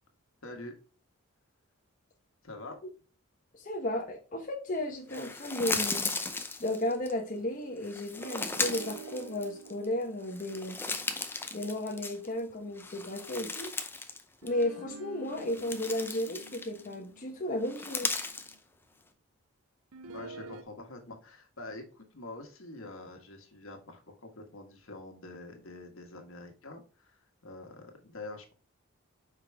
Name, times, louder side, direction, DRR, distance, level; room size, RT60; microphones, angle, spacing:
voice 1, 0.4-0.8 2.4-2.8 20.0-28.5, left 2 dB, 70° left, 4 dB, 1.5 m, -46 dB
voice 2, 3.5-6.1 6.6-10.8 11.5-13.7 14.4-18.1, left 1 dB, 40° left, 1 dB, 0.9 m, -34 dB
sound 1, 5.1-7.1 7.8-9.8 10.2-12.4 12.8-14.2 14.5-14.6 15.2-16.9 17.6-18.5, left 3 dB, 10° left, 0.6 m, -36 dB
sound 2, 8.2-12.8 14.4-18.6 19.9-20.6, right 4 dB, 90° right, 0.6 m, -49 dB
5.6 x 5.0 x 3.4 m, 0.36 s
head